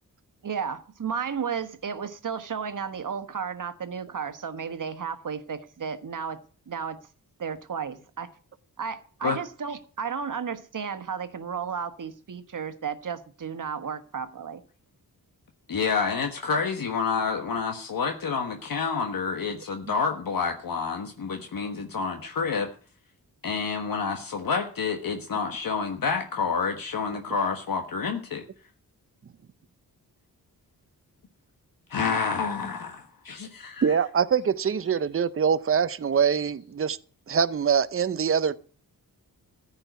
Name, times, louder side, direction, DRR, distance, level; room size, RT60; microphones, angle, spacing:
voice 1, 0.4-6.4 6.7-7.0 7.4-8.3 8.8-14.6, right 6 dB, 55° right, 1.4 m, -33 dB
voice 2, 15.7-22.7 23.4-28.4 31.9-34.0, left 5 dB, 65° left, 1.4 m, -28 dB
voice 3, 33.8-37.0 37.3-38.6, right 7 dB, 35° right, 0.7 m, -24 dB
14.5 x 5.6 x 9.3 m
wide cardioid pair, 105°, 37 cm